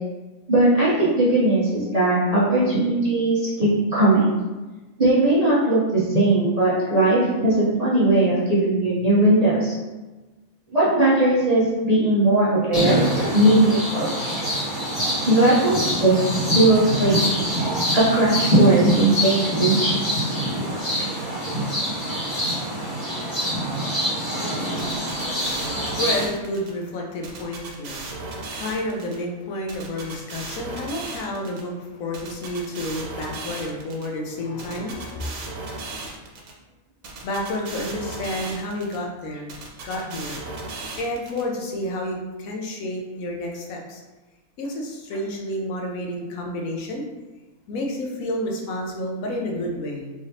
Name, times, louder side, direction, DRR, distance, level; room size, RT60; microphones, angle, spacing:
voice 1, 0.5-4.4 5.0-9.7 10.7-13.1 13.3-14.3 15.3-16.1 16.5-17.1 17.9-20.0 21.0-21.1, right 2 dB, 35° right, -9 dB, 0.6 m, -19 dB
sound 1, 12.7-26.2, equal, 50° left, 1.7 m, -24 dB
voice 2, 24.6-35.4 37.2-39.6 39.8-40.4 41.0-44.0 44.6-47.1 47.7-50.1, left 1 dB, 75° left, 0 dB, 1.1 m, -30 dB
sound 2, 24.8-26.7 27.2-29.2 29.7-31.6 32.1-34.1 34.6-36.5 37.0-39.0 39.5-41.4, right 3 dB, 85° right, 1.2 m, -36 dB
3.6 x 3.4 x 2.7 m, 1.2 s
omnidirectional pair, 1.5 m